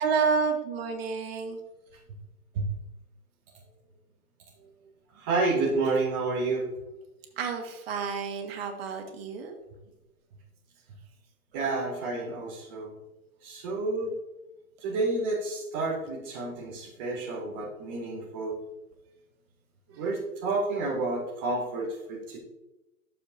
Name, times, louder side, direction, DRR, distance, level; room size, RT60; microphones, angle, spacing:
voice 1, 0.0-1.6 7.4-9.6, right 5 dB, 45° right, 3 dB, 1.7 m, -29 dB
voice 2, 5.1-6.7 11.5-12.9 13.4-14.1 14.8-18.6 19.9-22.4, right 3 dB, 10° right, -5 dB, 0.5 m, -30 dB
12.5 x 6.9 x 2.6 m, 1.0 s
hypercardioid pair, 140°, 43 cm